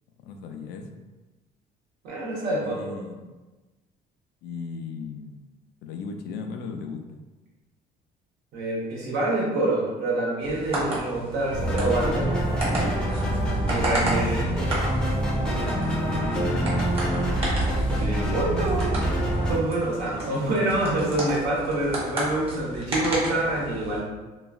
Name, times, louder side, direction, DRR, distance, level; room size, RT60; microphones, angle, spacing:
voice 1, 0.2-0.9 2.6-3.3 4.4-5.4 5.8-7.2 15.5-17.4, left 4 dB, 75° left, 5 dB, 0.4 m, -37 dB
voice 2, 2.0-3.0 8.5-12.3 13.7-14.5 18.0-18.9 19.5-24.1, right 2 dB, 80° right, -4 dB, 1.0 m, -26 dB
sound 1, 10.4-24.0, right 1 dB, 35° right, 1.1 m, -33 dB
sound 2, 11.5-19.6, right 1 dB, 5° left, 0.6 m, -25 dB
3.0 x 2.4 x 2.3 m, 1.2 s
cardioid pair, 110°, 17 cm